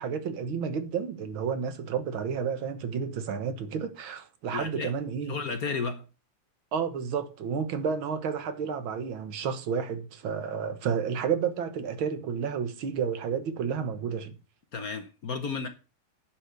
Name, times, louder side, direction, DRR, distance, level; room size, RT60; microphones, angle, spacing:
voice 1, 0.0-5.4 6.7-14.4, right 6 dB, 70° right, 2.0 m, -31 dB
voice 2, 4.5-4.9 5.3-6.0 14.7-15.7, left 5 dB, 55° left, 1.1 m, -33 dB
10.5 x 6.0 x 6.6 m
omnidirectional pair, 2.3 m